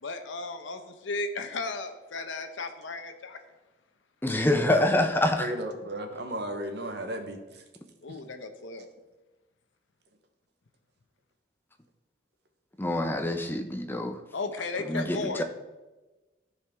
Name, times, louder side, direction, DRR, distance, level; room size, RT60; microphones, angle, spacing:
voice 1, 0.0-3.4 8.0-8.9 14.3-15.4, left 3 dB, 80° left, 7 dB, 0.8 m, -35 dB
voice 2, 4.2-5.5 12.8-14.2 14.8-15.4, left 1 dB, 10° left, 5 dB, 0.6 m, -26 dB
voice 3, 5.4-7.6 8.1-8.2, right 1 dB, 60° right, 6 dB, 1.0 m, -35 dB
14.0 x 4.8 x 3.5 m, 1.1 s
head